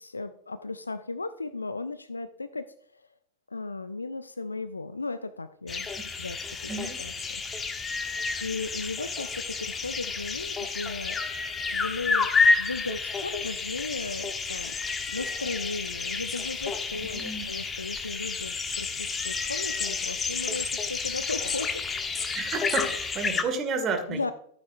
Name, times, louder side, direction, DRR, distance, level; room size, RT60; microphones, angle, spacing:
voice 1, 0.0-2.7 2.9-3.1 3.5-5.9 6.2-6.7 7.0-7.7 8.4-11.2 11.7-12.3 12.6-14.7 15.1-21.8 22.3-22.4 22.9-23.0 24.1-24.3, left 3 dB, 80° left, 13 dB, 0.4 m, -36 dB
sound 1, 5.7-23.4, left 4 dB, 20° left, 1.2 m, -30 dB
voice 2, 6.7-7.0 17.1-17.5 22.3-24.2, right 4 dB, 30° right, 5 dB, 2.1 m, -31 dB
14.0 x 9.1 x 2.6 m, 0.65 s
figure-of-eight pair, 90°, 0 cm